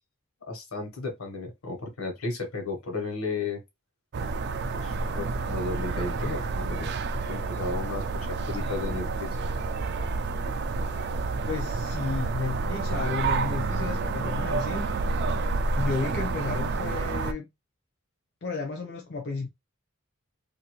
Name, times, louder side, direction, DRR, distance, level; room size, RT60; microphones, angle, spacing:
voice 1, 0.5-3.6 4.7-6.9 7.3-9.4, left 3 dB, 80° left, 1.1 m, -34 dB
sound 1, 4.1-17.3, right 3 dB, 55° right, 0.4 m, -29 dB
voice 2, 11.5-14.9 15.8-17.5 18.4-19.5, left 4 dB, 55° left, 0.6 m, -32 dB
2.7 x 2.6 x 3.0 m
head